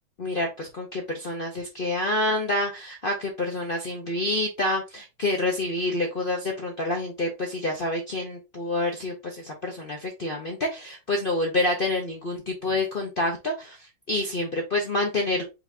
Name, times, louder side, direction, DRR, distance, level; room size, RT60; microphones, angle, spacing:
voice 1, 0.2-13.8 14.1-15.4, left 2 dB, 60° left, 1 dB, 0.5 m, -27 dB
4.9 x 2.6 x 3.4 m, 0.27 s
omnidirectional pair, 2.0 m